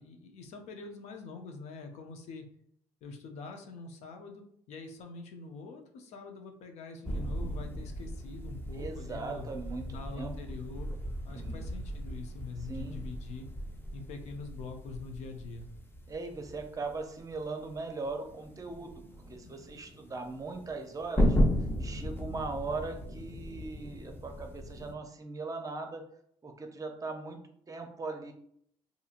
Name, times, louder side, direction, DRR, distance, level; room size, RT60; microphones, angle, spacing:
voice 1, 0.0-2.5 3.0-9.5 9.9-10.9 11.2-13.5 13.9-15.7, left 4 dB, 70° left, 4 dB, 0.5 m, -44 dB
sound 1, 7.0-24.9, equal, 20° left, 0.6 m, -35 dB
voice 2, 8.7-9.8 10.2-10.3 11.3-11.6 12.7-13.1 16.1-19.0 19.3-21.4 21.8-26.0 26.4-27.4 27.7-28.3, right 3 dB, 30° right, 4 dB, 0.6 m, -39 dB
2.7 x 2.7 x 2.4 m, 0.67 s
supercardioid pair, 75°, 12 cm